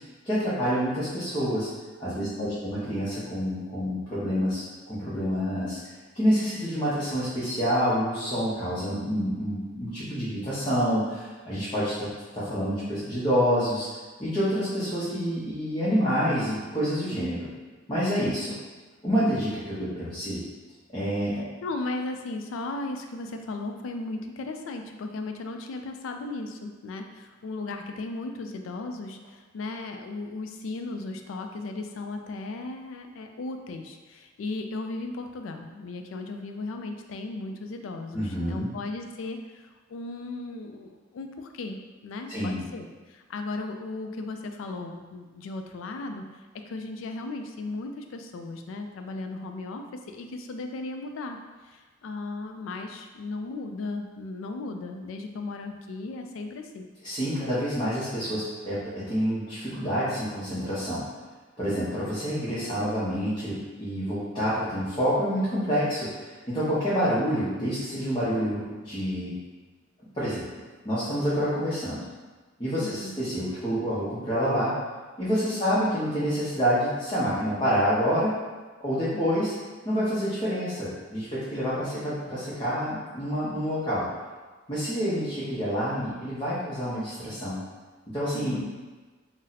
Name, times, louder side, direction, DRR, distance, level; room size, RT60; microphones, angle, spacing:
voice 1, 0.2-1.7 2.0-5.8 6.1-13.9 14.2-17.5 17.9-18.5 19.0-20.4 20.9-21.4 38.1-38.7 42.3-42.6 57.0-61.0 61.6-69.4 70.1-70.4 70.8-72.0 72.6-74.8 75.2-78.4 78.8-79.5 79.8-84.1 84.7-87.6 88.1-88.6, equal, 25° left, -11 dB, 0.7 m, -27 dB
voice 2, 2.2-2.6 21.6-46.4 46.7-51.4 51.6-56.9 72.8-73.2 75.5-75.8 79.1-79.3 88.3-88.7, left 2 dB, 70° left, 5 dB, 0.3 m, -36 dB
2.6 x 2.0 x 3.9 m, 1.3 s
head